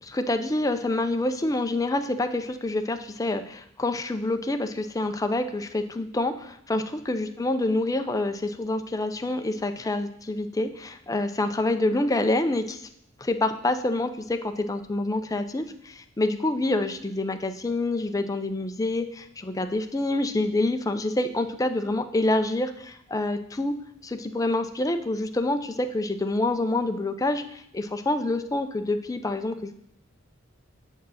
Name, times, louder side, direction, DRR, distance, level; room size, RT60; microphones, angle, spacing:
voice 1, 0.0-12.8 13.2-23.7 24.0-29.7, left 2 dB, 15° left, 8 dB, 0.5 m, -27 dB
6.9 x 4.5 x 6.3 m, 0.70 s
head